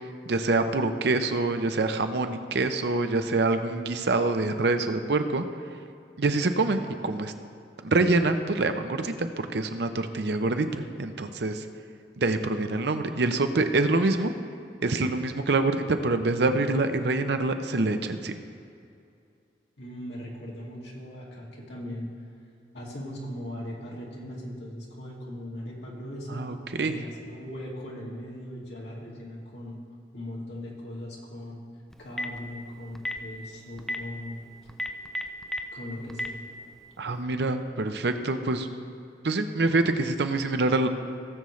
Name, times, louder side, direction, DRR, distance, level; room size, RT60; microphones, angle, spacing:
voice 1, 0.3-5.4 6.2-7.3 7.8-11.7 12.2-14.3 14.8-18.4 26.3-27.0 37.0-38.7 39.2-40.9, right 2 dB, 65° right, 8 dB, 0.7 m, -26 dB
voice 2, 19.8-22.2 22.7-29.8 30.1-31.6 32.0-34.5 35.7-36.4, left 1 dB, 75° left, -4 dB, 2.3 m, -39 dB
Telephone, 31.9-32.4 32.9-33.2 33.8-34.0 34.7-35.6 36.1-36.3, equal, 5° left, 0.4 m, -30 dB
18.0 x 7.0 x 3.2 m, 2.5 s
head